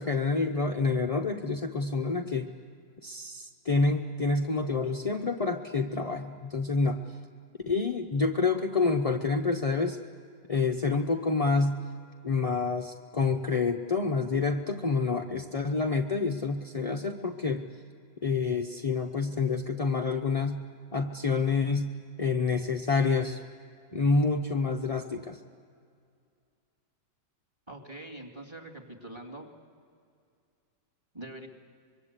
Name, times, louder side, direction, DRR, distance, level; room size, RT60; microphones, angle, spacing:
voice 1, 0.0-2.5 3.0-7.0 7.7-10.0 10.5-11.8 12.2-17.6 18.2-20.6 20.9-21.9 22.2-23.4 23.9-25.4, left 4 dB, 40° left, 2 dB, 0.5 m, -28 dB
voice 2, 27.7-29.5 31.1-31.5, right 1 dB, 15° right, 2 dB, 2.4 m, -43 dB
25.0 x 23.0 x 8.2 m, 2.4 s
omnidirectional pair, 1.9 m